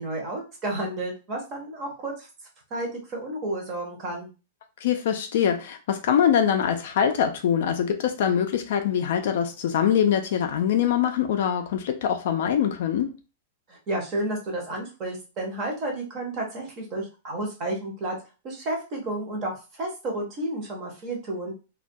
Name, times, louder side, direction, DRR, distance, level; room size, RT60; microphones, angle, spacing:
voice 1, 0.0-2.3 2.7-4.3 13.7-18.2 18.4-21.5, right 1 dB, 25° right, 0.7 m, -31 dB
voice 2, 4.8-13.1, left 8 dB, 50° left, 0.3 m, -23 dB
2.2 x 2.1 x 2.6 m
supercardioid pair, 175°, 0 cm